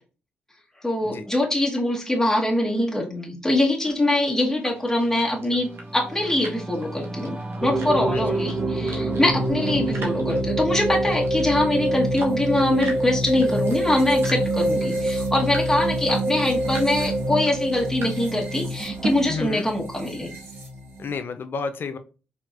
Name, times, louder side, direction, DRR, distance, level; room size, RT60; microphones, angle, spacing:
voice 1, 0.8-20.3, left 1 dB, 10° left, -2 dB, 1.3 m, -23 dB
sound 1, 3.8-19.1, right 3 dB, 65° right, 1.1 m, -40 dB
Singing / Musical instrument, 4.8-14.5, right 1 dB, 25° right, 0.6 m, -37 dB
sound 2, 7.6-21.1, right 1 dB, 45° right, 2.1 m, -26 dB
voice 2, 19.3-19.7 21.0-22.0, left 4 dB, 55° left, 10 dB, 0.5 m, -30 dB
4.7 x 2.8 x 2.5 m, 0.34 s
hypercardioid pair, 45°, 4 cm